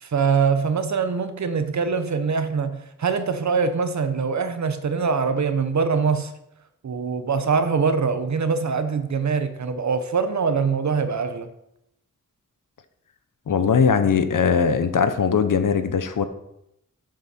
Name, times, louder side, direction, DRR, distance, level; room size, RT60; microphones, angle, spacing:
voice 1, 0.0-6.3 6.8-11.5, right 5 dB, 60° right, 1.1 m, -23 dB
voice 2, 13.5-16.2, left 6 dB, 80° left, 1.0 m, -20 dB
12.0 x 7.7 x 4.5 m
wide cardioid pair, 145°, 32 cm